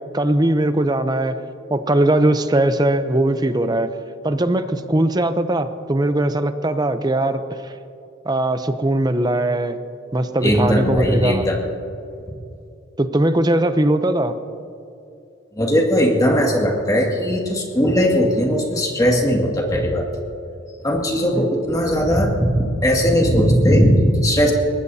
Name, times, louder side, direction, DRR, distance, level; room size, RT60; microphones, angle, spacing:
voice 1, 0.1-1.4 1.7-3.9 4.2-7.7 8.2-9.8 10.1-11.4 13.0-14.3 21.3-21.5, right 1 dB, 20° right, 10 dB, 0.6 m, -20 dB
voice 2, 10.4-11.6 15.5-20.3 20.8-24.5, equal, 20° left, -1 dB, 2.1 m, -18 dB
23.0 x 20.0 x 2.8 m, 2.7 s
head